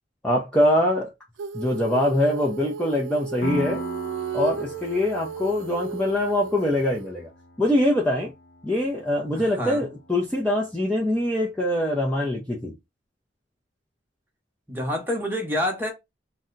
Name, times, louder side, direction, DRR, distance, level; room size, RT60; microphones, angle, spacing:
voice 1, 0.2-1.1 1.5-3.8 4.3-7.3 7.6-8.3 8.6-12.7, left 1 dB, 5° left, 0.5 m, -23 dB
Female singing, 1.4-7.1, right 5 dB, 90° right, 0.3 m, -34 dB
Piano, 3.4-10.8, equal, 55° left, 0.5 m, -38 dB
voice 2, 9.3-9.9 14.7-15.9, left 1 dB, 10° right, 0.9 m, -27 dB
2.8 x 2.2 x 3.7 m
head